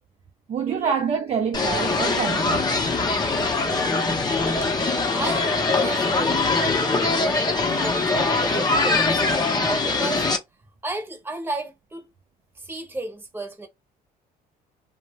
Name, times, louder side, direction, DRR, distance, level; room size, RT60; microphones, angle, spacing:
voice 1, 0.5-2.8, right 6 dB, 35° right, 0.4 m, -26 dB
sound 1, 1.5-10.4, left 3 dB, 25° left, 0.7 m, -22 dB
voice 2, 3.6-4.3 4.6-4.7 5.1-7.1 7.7-8.5 8.8-10.2 10.8-12.1 12.6-13.7, right 2 dB, 10° right, 0.8 m, -34 dB
2.5 x 2.0 x 2.9 m
cardioid pair, 110°, 17 cm